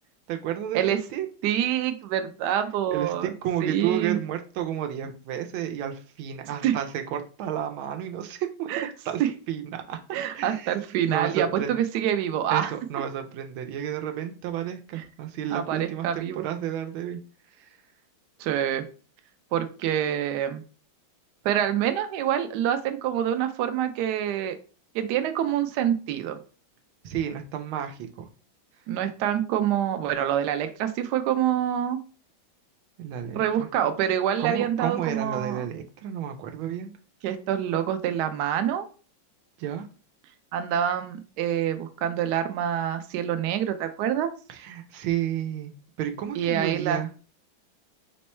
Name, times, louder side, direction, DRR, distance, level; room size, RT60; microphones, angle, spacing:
voice 1, 0.3-1.3 2.9-9.2 9.5-10.0 10.3-10.7 11.1-11.8 12.5-17.2 17.6-17.7 27.0-28.3 33.0-33.7 34.4-36.9 39.6-39.9 44.5-45.7 46.0-47.1, right 10 dB, 85° right, 5 dB, 1.4 m, -31 dB
voice 2, 1.4-3.3 3.6-4.2 6.6-6.7 8.7-8.9 9.2-9.3 10.1-12.7 15.0-15.1 15.5-16.5 18.4-18.8 19.5-20.6 21.4-24.5 24.9-26.4 28.9-32.0 33.3-35.6 37.2-38.9 40.5-44.3 46.3-47.0, right 10 dB, 70° right, 8 dB, 1.0 m, -26 dB
4.4 x 2.2 x 4.1 m, 0.37 s
omnidirectional pair, 2.2 m